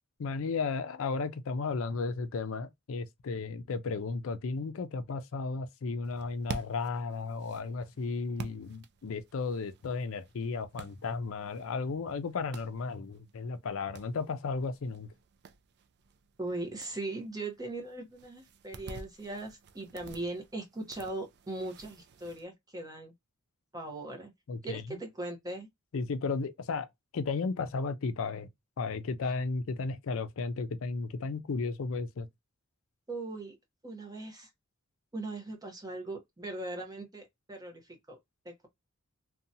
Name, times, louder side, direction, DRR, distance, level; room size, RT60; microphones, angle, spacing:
voice 1, 0.2-15.1 24.5-25.0 25.9-26.9 27.1-28.5 28.8-32.3, left 4 dB, 65° left, 0.4 m, -34 dB
sound 1, 6.0-22.4, right 4 dB, 50° right, 0.3 m, -50 dB
voice 2, 16.4-23.1 23.7-24.3 24.6-25.7 33.1-33.6 33.8-34.5 35.1-38.2 38.4-38.7, right 2 dB, 15° right, 0.8 m, -39 dB
2.7 x 2.2 x 2.6 m
head